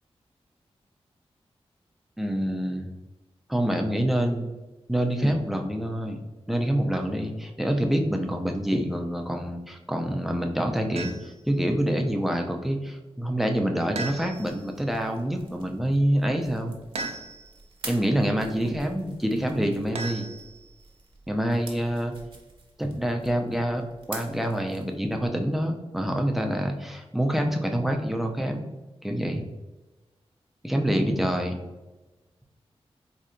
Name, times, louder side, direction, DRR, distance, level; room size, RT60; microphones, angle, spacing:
voice 1, 2.2-2.9 3.5-4.5 4.9-6.2 6.5-16.7 17.8-20.3 21.3-22.1 22.8-28.7 29.0-29.4 30.6-31.6, equal, ahead, 3 dB, 0.4 m, -26 dB
sound 1, 11.0-11.5 14.0-14.7 16.9-17.7 19.9-20.8, right 3 dB, 75° right, 0.5 m, -36 dB
sound 2, 14.1-25.3, right 2 dB, 50° right, 0.8 m, -47 dB
4.2 x 2.7 x 2.5 m, 1.1 s
wide cardioid pair, 95°, 11 cm